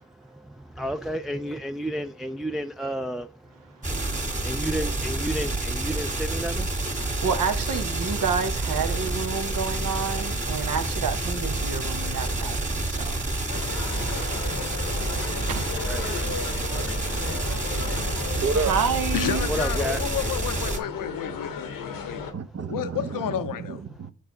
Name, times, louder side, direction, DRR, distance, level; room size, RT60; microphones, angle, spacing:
voice 1, 0.8-3.3 4.4-6.7 15.9-16.2 17.1-17.3 19.5-20.0, right 1 dB, ahead, 0.4 m, -31 dB
sound 1, 3.8-20.8, right 2 dB, 25° right, 2.0 m, -28 dB
voice 2, 6.9-13.2 14.1-14.7 15.5-15.7 18.6-19.5, right 6 dB, 75° right, 1.0 m, -29 dB
sound 2, 13.5-22.3, left 6 dB, 90° left, 1.0 m, -35 dB
voice 3, 17.3-18.8 22.3-24.1, right 4 dB, 50° right, 0.8 m, -31 dB
voice 4, 19.1-22.3 22.7-23.8, left 10 dB, 70° left, 0.6 m, -31 dB
6.6 x 4.8 x 3.9 m
supercardioid pair, 50°, 33 cm